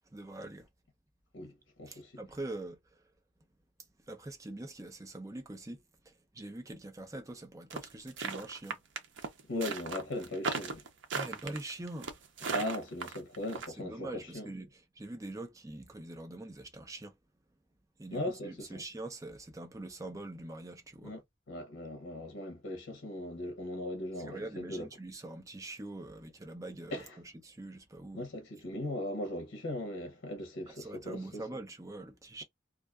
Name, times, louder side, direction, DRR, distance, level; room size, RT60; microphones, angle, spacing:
voice 1, 0.1-0.7 1.9-2.8 4.1-8.8 11.1-12.2 13.8-17.1 18.0-21.2 24.2-27.0 27.4-28.3 30.7-32.4, right 2 dB, 15° right, 0.5 m, -44 dB
voice 2, 1.3-2.2 9.5-10.8 12.4-14.5 18.1-18.8 21.0-21.2 21.5-24.9 26.9-27.2 28.1-31.4, left 1 dB, 85° left, 0.7 m, -39 dB
sound 1, 7.7-13.7, right 5 dB, 70° right, 0.6 m, -36 dB
2.3 x 2.3 x 2.3 m
head